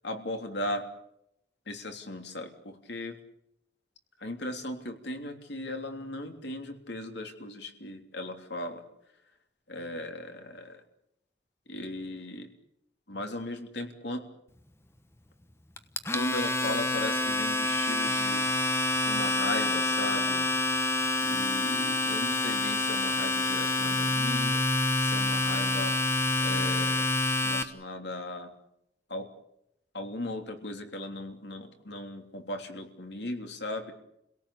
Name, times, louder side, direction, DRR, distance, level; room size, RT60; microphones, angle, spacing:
voice 1, 0.0-0.8 1.7-3.2 4.2-8.8 9.7-10.8 11.7-12.5 13.1-14.2 16.1-18.4 19.0-20.5 21.2-24.6 25.0-26.0 26.4-27.1 27.4-28.5 29.1-29.3 29.9-33.9, left 1 dB, 65° left, 5 dB, 3.2 m, -37 dB
Domestic sounds home sounds, 15.8-27.6, left 2 dB, 15° left, 1.2 m, -27 dB
29.0 x 17.5 x 8.5 m, 0.81 s
head